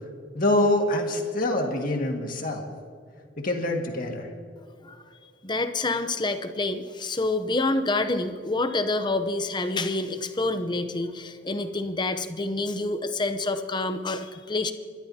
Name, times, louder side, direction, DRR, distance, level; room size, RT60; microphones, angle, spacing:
voice 1, 0.3-2.6 3.4-4.3, left 1 dB, 45° left, 2 dB, 1.9 m, -25 dB
voice 2, 5.4-14.7, left 2 dB, 20° left, 9 dB, 0.7 m, -27 dB
28.5 x 12.5 x 2.8 m, 2.2 s
head